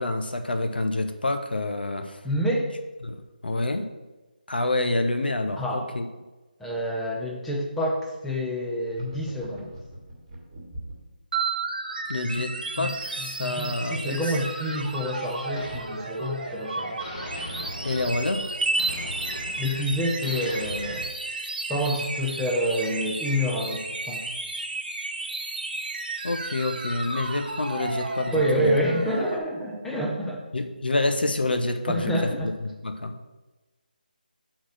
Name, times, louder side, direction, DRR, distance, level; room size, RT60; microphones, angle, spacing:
voice 1, 0.0-2.2 3.0-3.9 4.5-6.1 12.1-14.2 17.8-18.5 26.2-28.7 30.5-32.1 32.4-32.5 32.8-33.2, left 2 dB, 80° left, 7 dB, 0.8 m, -27 dB
voice 2, 2.2-2.7 5.6-5.9 6.6-9.7 12.4-12.5 12.8-12.9 13.2-17.0 19.6-21.1 21.7-24.3 28.3-30.4 31.9-32.5, equal, 5° left, -2 dB, 0.6 m, -28 dB
sound 1, 8.9-11.1, equal, 25° right, 1.7 m, -39 dB
sound 2, 11.3-29.4, right 3 dB, 65° right, 1.0 m, -32 dB
sound 3, 13.0-16.7 17.0-21.0, left 1 dB, 30° left, 1.2 m, -41 dB
6.2 x 4.1 x 6.4 m, 1.1 s
figure-of-eight pair, 165°, 5 cm